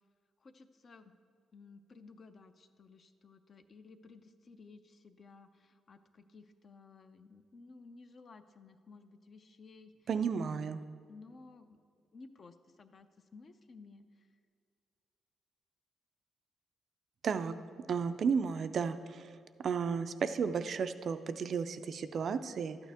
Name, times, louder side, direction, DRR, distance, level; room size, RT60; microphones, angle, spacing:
voice 1, 0.4-1.1 1.5-9.9 10.4-10.8 11.1-11.7 12.1-14.0, left 4 dB, 35° left, 10 dB, 0.5 m, -56 dB
voice 2, 10.1-10.8 17.2-17.5 17.9-19.4 19.6-22.8, right 6 dB, 45° right, 11 dB, 0.3 m, -33 dB
12.0 x 8.9 x 3.5 m, 2.2 s
cardioid pair, 155°, 0 cm